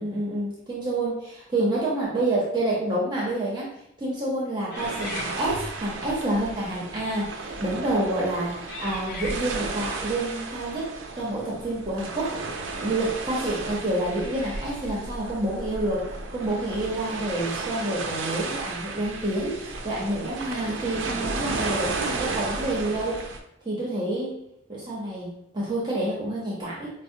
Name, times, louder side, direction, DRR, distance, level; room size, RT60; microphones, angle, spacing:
voice 1, 0.0-3.6 4.0-10.9 11.1-23.2 23.6-24.3 24.7-26.9, right 1 dB, 20° right, -6 dB, 0.7 m, -28 dB
sound 1, 4.7-5.9 6.7-6.9 7.6-7.9 8.7-9.8 12.5-12.6 14.1-15.0, left 3 dB, 55° left, 0.6 m, -40 dB
sound 2, 4.8-23.4, right 3 dB, 70° right, 0.4 m, -34 dB
4.6 x 2.0 x 2.6 m, 0.77 s
head